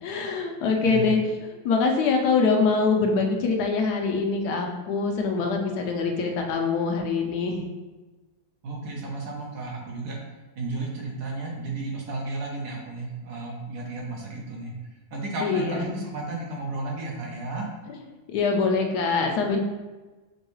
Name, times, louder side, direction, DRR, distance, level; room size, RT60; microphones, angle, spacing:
voice 1, 0.0-1.2 1.6-7.6 15.4-16.0 18.3-19.6, left 4 dB, 80° left, 2 dB, 1.2 m, -24 dB
voice 2, 0.8-1.1 8.6-10.2 10.5-14.8 15.1-17.7, right 2 dB, 80° right, -2 dB, 1.5 m, -33 dB
5.3 x 2.3 x 3.1 m, 1.2 s
omnidirectional pair, 1.7 m